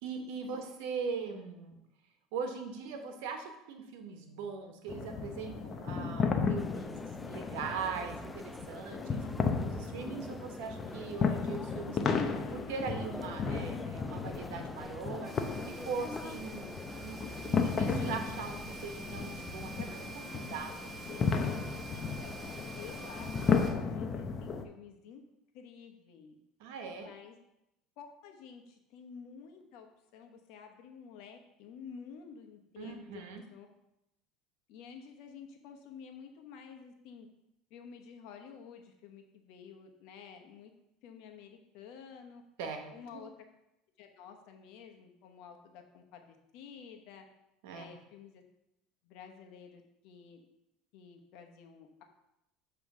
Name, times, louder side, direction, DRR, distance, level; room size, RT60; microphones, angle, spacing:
voice 1, 0.0-1.8 2.3-9.0 9.6-12.2 12.5-15.3 15.7-16.7 17.0-21.4 26.6-27.1 32.8-33.4 42.6-43.2 47.6-47.8, right 5 dB, 80° right, 5 dB, 1.1 m, -41 dB
sound 1, 4.9-24.6, left 5 dB, 35° left, 0.7 m, -34 dB
sound 2, 6.6-23.6, left 2 dB, 10° left, 0.3 m, -48 dB
voice 2, 9.0-9.4 21.9-22.4 22.7-25.2 25.5-26.4 27.0-27.4 28.0-29.9 30.1-33.2 33.5-33.7 34.7-37.3 37.7-40.7 41.0-42.4 42.9-43.3 44.0-47.3 47.7-48.4 49.0-50.4 50.9-52.0, left 6 dB, 70° left, 4 dB, 1.1 m, -51 dB
sound 3, 15.2-23.7, right 2 dB, 10° right, 1.4 m, -47 dB
7.4 x 3.2 x 6.0 m, 0.87 s
supercardioid pair, 120°, 0 cm